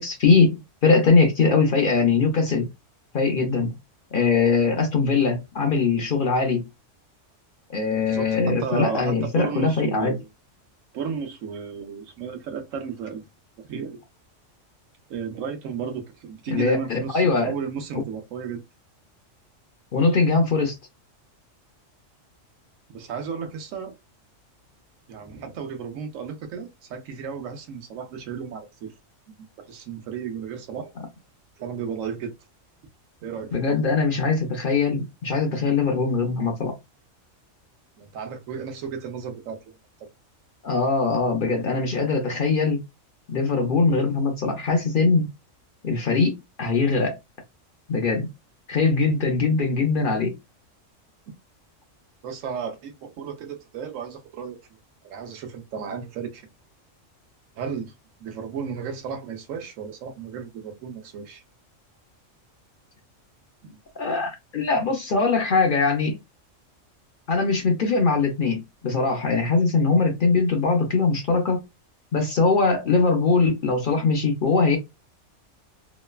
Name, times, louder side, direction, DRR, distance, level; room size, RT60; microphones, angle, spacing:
voice 1, 0.0-2.7 3.1-3.7 4.1-6.6 7.7-10.1 16.5-17.5 19.9-20.8 33.5-36.7 40.6-42.8 43.3-45.3 45.8-47.2 47.9-48.3 48.7-50.3 64.0-66.2 67.3-71.6 72.1-74.8, left 4 dB, 55° left, 0.6 m, -21 dB
voice 2, 8.1-10.3 10.9-13.2 13.6-14.0 15.1-18.6 22.9-23.9 25.1-28.9 29.3-30.9 31.6-32.3 33.2-33.8 38.0-39.7 40.0-40.1 43.9-44.1 52.2-54.8 55.0-56.5 57.6-57.9 58.2-61.4 63.6-63.8, right 6 dB, 85° right, 1.0 m, -34 dB
3.0 x 2.1 x 2.2 m
omnidirectional pair, 1.3 m